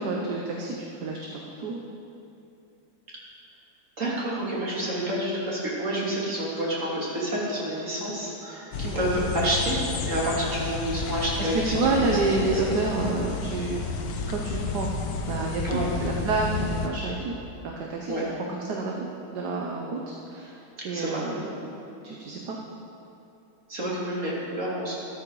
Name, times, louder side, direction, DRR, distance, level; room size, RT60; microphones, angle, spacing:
voice 1, 0.0-1.8 5.1-5.2 6.0-6.3 8.8-9.3 11.4-14.0 14.3-14.9 15.3-17.3 17.6-22.6, right 3 dB, 55° right, 0 dB, 1.4 m, -29 dB
voice 2, 4.0-11.9 15.6-15.9 18.1-18.2 20.9-21.2 23.7-24.9, right 1 dB, 35° right, -6 dB, 3.2 m, -29 dB
sound 1, 8.7-16.9, left 4 dB, 60° left, 1.4 m, -31 dB
13.5 x 12.5 x 4.8 m, 2.8 s
omnidirectional pair, 2.3 m